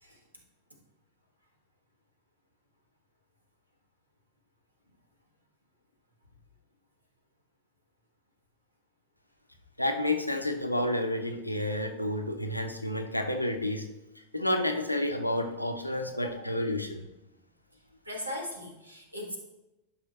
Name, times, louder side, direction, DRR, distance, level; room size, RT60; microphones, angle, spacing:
voice 1, 9.8-13.8 14.3-17.0, left 1 dB, 90° left, 4 dB, 0.8 m, -30 dB
voice 2, 16.1-16.5 18.0-19.4, left 1 dB, 85° right, 1 dB, 1.5 m, -39 dB
11.5 x 5.7 x 2.9 m, 0.96 s
figure-of-eight pair, 90°, 0 cm